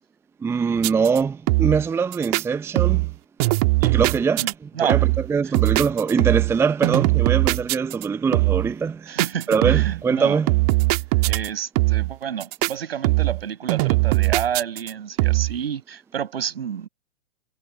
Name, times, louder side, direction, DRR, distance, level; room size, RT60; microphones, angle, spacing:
voice 1, 0.4-3.1 3.8-9.2 9.5-10.5, right 5 dB, 10° right, 0.8 m, -23 dB
sound 1, 0.8-1.2 1.5-1.9 2.1-2.4 2.8-3.1 3.4-4.5 4.9-5.3 5.5-6.6 6.8-8.1 8.3-8.7 9.2-10.0 10.5-11.5 11.8-12.1 12.4-12.7 13.0-13.4 13.7-14.9 15.2-15.6, right 25 dB, 35° right, 1.7 m, -20 dB
voice 2, 4.4-5.0 9.1-10.4 11.3-16.9, right 8 dB, 60° right, 6.7 m, -29 dB
figure-of-eight pair, 110°, 33 cm